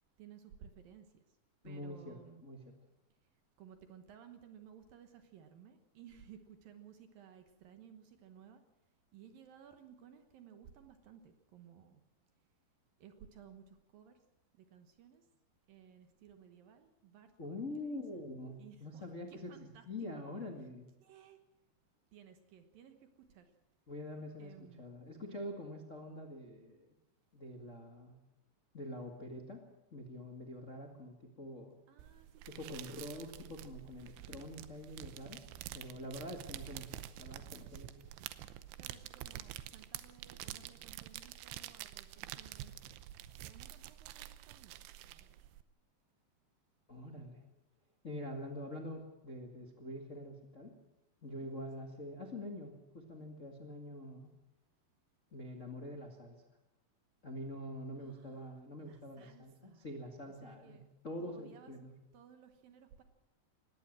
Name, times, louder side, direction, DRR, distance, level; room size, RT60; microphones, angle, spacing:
voice 1, 0.2-1.2 1.6-2.4 3.6-8.6 9.1-12.0 13.0-14.2 14.5-15.3 15.7-18.3 18.6-20.2 21.0-21.4 22.1-23.5 24.4-24.9 31.9-32.8 36.1-36.5 38.8-43.0 43.4-45.4 51.4-51.9 58.0-58.5 58.8-59.9 60.3-60.9 61.2-61.7 62.1-63.0, right 8 dB, 65° right, 7 dB, 2.5 m, -58 dB
voice 2, 1.6-2.8 17.4-19.5 19.9-20.9 23.9-26.9 27.3-28.1 28.7-29.6 29.9-31.7 32.5-35.4 35.7-37.9 46.9-47.4 48.0-50.7 51.2-54.3 55.3-56.4 57.2-61.9, left 1 dB, 65° left, 2 dB, 0.7 m, -45 dB
sound 1, 32.0-45.6, right 13 dB, 85° right, 3.2 m, -48 dB
20.0 x 17.5 x 7.5 m, 0.93 s
omnidirectional pair, 5.2 m